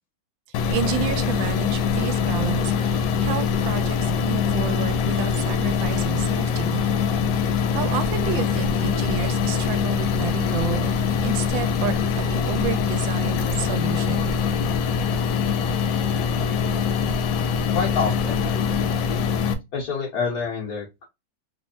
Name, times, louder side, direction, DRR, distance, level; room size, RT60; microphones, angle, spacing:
sound 1, 0.5-19.5, left 6 dB, 75° left, 1.2 m, -23 dB
voice 1, 0.7-6.8 7.4-14.4, right 7 dB, 80° right, 1.3 m, -31 dB
voice 2, 17.7-18.9 19.7-21.1, left 5 dB, 60° left, 1.3 m, -28 dB
3.4 x 3.1 x 2.7 m
omnidirectional pair, 2.1 m